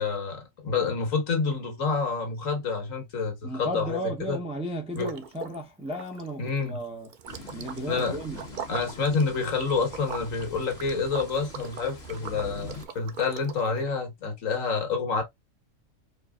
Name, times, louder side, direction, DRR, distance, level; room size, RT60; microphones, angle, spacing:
voice 1, 0.0-4.4 4.9-5.1 6.4-6.8 7.9-8.2 8.7-15.2, left 4 dB, 75° left, 1.6 m, -28 dB
voice 2, 3.4-7.1 7.5-8.4, right 1 dB, 5° right, 0.4 m, -34 dB
Liquid, 4.9-5.6 5.9-13.8, right 7 dB, 65° right, 0.4 m, -42 dB
sound 1, 7.3-12.9, left 2 dB, 55° left, 1.4 m, -44 dB
4.6 x 2.5 x 2.3 m
omnidirectional pair, 1.4 m